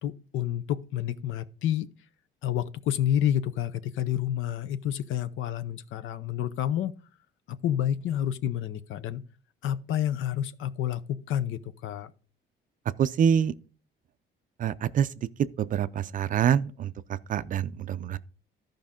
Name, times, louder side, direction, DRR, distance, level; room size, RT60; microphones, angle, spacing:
voice 1, 0.0-1.9 2.4-7.0 7.5-9.2 9.6-12.1, left 11 dB, 75° left, 0.7 m, -29 dB
voice 2, 13.0-13.5 14.6-15.1 15.6-18.2, right 8 dB, 40° right, 0.4 m, -26 dB
14.0 x 5.2 x 3.6 m
cardioid pair, 170°, 21 cm